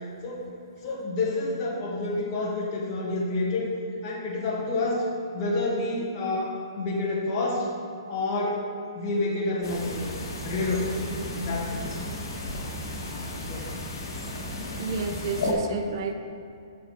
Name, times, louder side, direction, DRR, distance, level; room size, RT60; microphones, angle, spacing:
voice 1, 0.8-3.7 4.0-5.0 5.3-7.7 8.1-8.6 8.9-12.2 13.5-13.7, left 2 dB, 35° left, -5 dB, 1.7 m, -29 dB
sound 1, 9.6-15.5, left 2 dB, 65° left, 1.9 m, -34 dB
voice 2, 14.8-16.1, right 3 dB, 50° right, 5 dB, 0.8 m, -31 dB
6.8 x 6.2 x 4.7 m, 2.4 s
hypercardioid pair, 135°, 3 cm